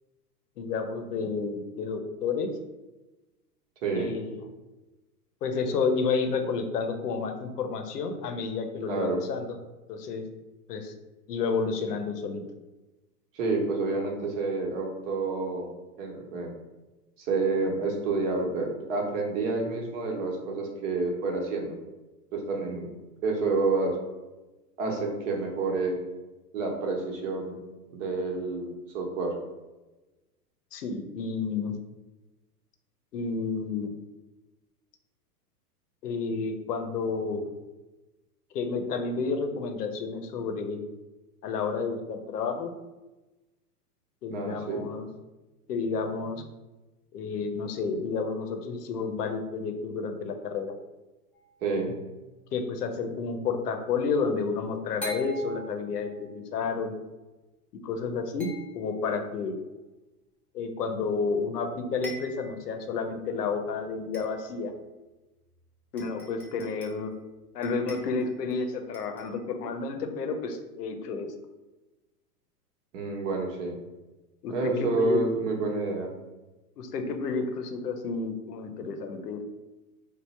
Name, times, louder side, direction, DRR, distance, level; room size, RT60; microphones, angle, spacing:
voice 1, 0.6-2.5 3.9-4.4 5.4-9.5 9.9-10.2 10.7-10.9 11.3-12.4 30.7-31.7 33.1-33.9 36.0-37.5 38.5-40.8 41.4-42.7 44.2-45.1 45.7-46.4 47.1-50.7 52.5-56.9 57.8-58.5 58.7-59.6 60.5-64.7 65.9-67.1 67.5-71.3 74.4-75.2 76.8-79.4, left 4 dB, 75° left, 6 dB, 0.7 m, -30 dB
voice 2, 3.8-4.1 8.8-9.2 13.3-15.7 16.0-16.5 17.2-21.8 22.3-22.9 23.2-24.0 24.8-26.0 26.5-27.6 27.9-29.3 44.3-44.8 51.6-52.0 72.9-73.8 74.5-76.1, right 3 dB, 50° right, 1 dB, 1.0 m, -29 dB
sound 1, 51.3-51.9 55.0-56.3 58.4-59.2 61.3-61.4 61.7-61.8 62.0-62.7 63.2-63.3 64.1-64.7 65.5-65.6 66.0-67.1 67.6-68.6 68.9-69.4, equal, 5° left, 0.4 m, -44 dB
3.6 x 2.0 x 4.2 m, 1.1 s
hypercardioid pair, 110°, 47 cm